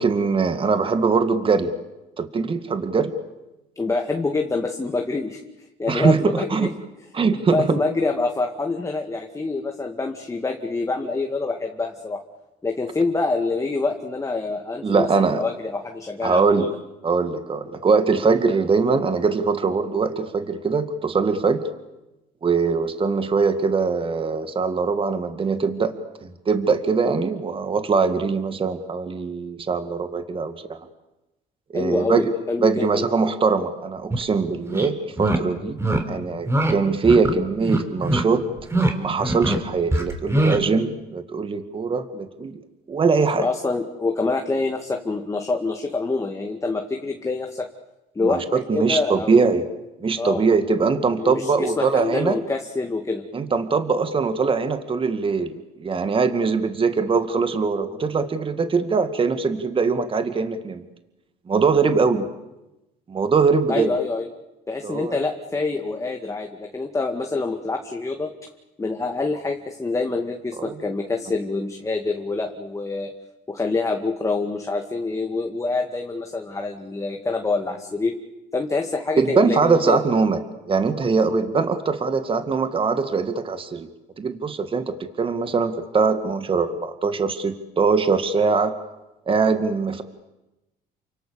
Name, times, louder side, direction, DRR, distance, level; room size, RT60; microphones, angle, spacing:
voice 1, 0.0-1.7 2.2-3.1 5.9-6.7 7.1-7.8 14.8-15.4 16.2-16.7 17.0-21.6 22.4-25.9 26.2-30.8 31.7-32.2 32.6-35.8 36.1-38.4 38.9-42.6 42.9-43.5 48.2-49.6 50.0-52.4 53.3-60.8 61.5-62.3 63.1-63.9 64.8-65.1 70.6-70.7 79.2-80.4 80.7-83.9 84.2-88.7 89.3-90.0, right 4 dB, 30° right, 9 dB, 2.2 m, -22 dB
voice 2, 3.8-5.4 5.8-6.7 7.3-12.2 12.6-16.8 31.7-33.1 43.4-47.7 48.2-49.5 50.2-50.4 51.2-53.2 63.7-64.3 64.7-68.3 68.8-73.1 73.5-78.1 78.5-80.0, left 3 dB, 20° left, 3 dB, 2.2 m, -26 dB
sound 1, 34.1-34.2 34.7-34.9 35.2-35.4 35.8-36.0 36.5-36.7 37.0-37.3 37.6-38.2 38.6-38.9 39.2-39.6 39.9-40.6, right 1 dB, 15° right, 4.0 m, -22 dB
29.5 x 25.5 x 7.1 m, 0.99 s
cardioid pair, 110°, 17 cm